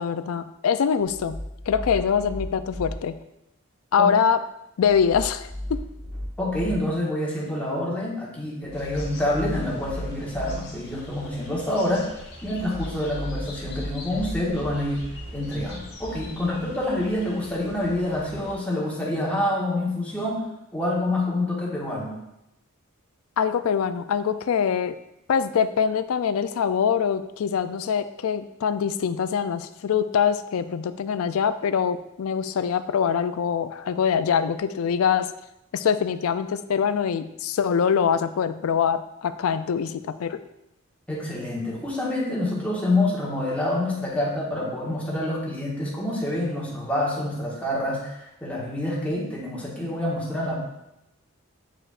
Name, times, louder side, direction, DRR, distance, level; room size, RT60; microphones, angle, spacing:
voice 1, 0.0-3.2 3.9-4.4 4.8-5.8 23.4-25.0 25.3-35.3 35.7-40.4, left 7 dB, 75° left, 13 dB, 0.4 m, -24 dB
sound 1, 1.0-2.9 4.8-6.7 8.6-10.5 12.4-16.2, equal, 50° right, 2.3 m, -36 dB
voice 2, 6.4-12.1 12.4-15.1 15.3-20.5 20.7-22.2 41.1-50.5, left 1 dB, 5° left, -6 dB, 1.5 m, -27 dB
sound 2, 8.7-18.6, left 1 dB, 55° left, 1.6 m, -44 dB
8.6 x 4.9 x 2.5 m, 0.85 s
head